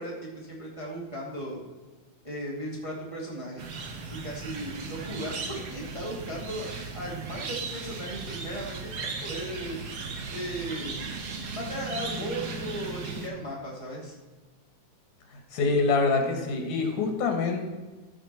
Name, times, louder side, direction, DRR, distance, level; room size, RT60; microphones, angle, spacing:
voice 1, 0.0-1.6 2.2-3.7 4.1-9.8 10.3-11.1 11.5-14.2, equal, 10° right, -4 dB, 1.9 m, -36 dB
sound 1, 3.6-13.3, right 4 dB, 75° right, 0.9 m, -37 dB
voice 2, 15.5-17.6, left 4 dB, 90° left, 4 dB, 3.1 m, -25 dB
14.5 x 6.5 x 4.3 m, 1.3 s
omnidirectional pair, 3.5 m